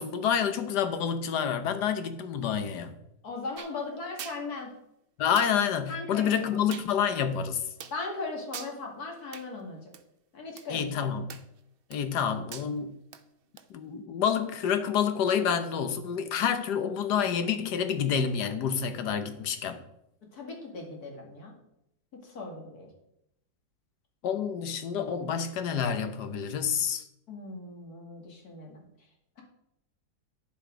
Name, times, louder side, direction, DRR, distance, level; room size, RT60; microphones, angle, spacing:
voice 1, 0.0-3.0 5.2-7.7 10.7-11.3 11.9-13.0 13.7-19.8 24.2-27.1, left 7 dB, 85° left, 9 dB, 1.5 m, -28 dB
voice 2, 3.2-4.7 5.8-6.3 7.9-9.8 10.3-10.8 20.3-21.5 22.1-22.9 27.3-28.8, left 3 dB, 65° left, 1 dB, 2.5 m, -38 dB
sound 1, 3.6-3.7 4.2-4.4 5.4-5.5 6.7-6.9 7.8-8.0 8.5-8.7 9.3-9.5 9.9-10.0 10.6-10.7 11.3-11.6 11.9-12.2 12.5-12.7 13.1-13.2 13.6-13.7, right 8 dB, 60° right, 0.6 m, -42 dB
9.6 x 7.4 x 5.1 m, 0.80 s
omnidirectional pair, 1.7 m